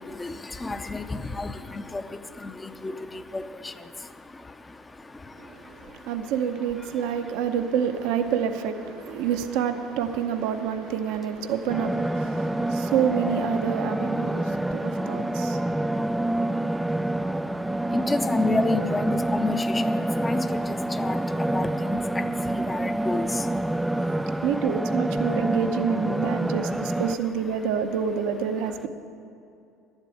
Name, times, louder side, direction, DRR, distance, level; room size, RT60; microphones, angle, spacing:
voice 1, 0.0-6.3 6.9-7.0 12.2-12.9 14.2-24.5 25.2-25.5 26.2-26.4 26.7-27.0, left 3 dB, 20° left, 0.7 m, -33 dB
voice 2, 5.4-16.6 16.9-17.6 24.4-28.9, right 8 dB, 75° right, 0.8 m, -28 dB
sound 1, 11.7-27.2, right 1 dB, 10° right, 0.4 m, -27 dB
11.5 x 8.2 x 9.1 m
supercardioid pair, 80°, 0 cm